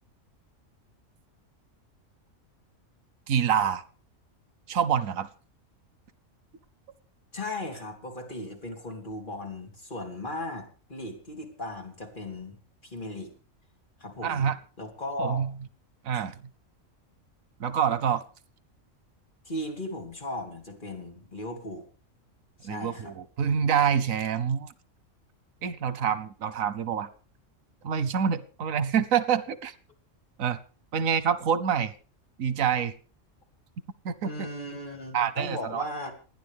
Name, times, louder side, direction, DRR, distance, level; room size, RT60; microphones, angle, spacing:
voice 1, 3.3-3.8 4.7-5.3 14.2-14.6 15.2-15.5 16.0-16.4 17.6-18.2 22.6-24.7 25.6-27.1 27.8-29.7 30.4-30.6 30.9-31.9 32.4-32.9 34.0-34.5 35.1-35.8, right 7 dB, 90° right, 14 dB, 1.3 m, -26 dB
voice 2, 7.3-12.6 12.8-13.3 14.0-14.4 14.8-15.4 16.1-16.2 19.5-21.8 22.6-23.1 34.2-36.1, left 1 dB, 40° left, 2 dB, 3.4 m, -37 dB
28.5 x 10.0 x 3.5 m, 0.39 s
omnidirectional pair, 1.4 m